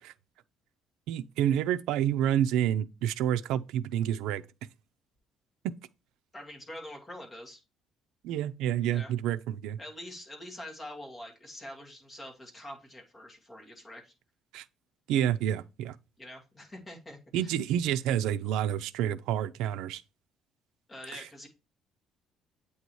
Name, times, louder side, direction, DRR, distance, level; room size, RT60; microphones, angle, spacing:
voice 1, 1.1-4.4 5.6-5.7 8.2-9.8 14.5-14.6 15.1-16.0 17.3-20.0 21.1-21.2, right 10 dB, 90° right, 0.4 m, -28 dB
voice 2, 6.3-7.6 8.9-9.1 9.8-14.1 16.2-17.5 20.9-21.5, left 1 dB, 15° left, 1.7 m, -45 dB
8.3 x 2.8 x 4.6 m
cardioid pair, 150°, 0 cm